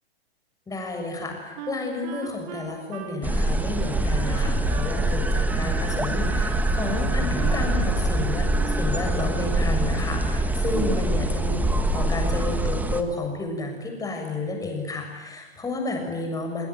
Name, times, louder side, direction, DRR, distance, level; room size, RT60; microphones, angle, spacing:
voice 1, 0.7-16.7, left 3 dB, 10° left, 3 dB, 6.7 m, -31 dB
Wind instrument woodwind instrument, 1.6-5.0 5.3-6.4 6.9-8.2 8.5-8.9, right 9 dB, 45° right, 3.9 m, -40 dB
sound 1, 3.2-13.0, right 1 dB, 5° right, 1.6 m, -24 dB
30.0 x 20.0 x 9.3 m, 1.2 s
figure-of-eight pair, 110°, 32 cm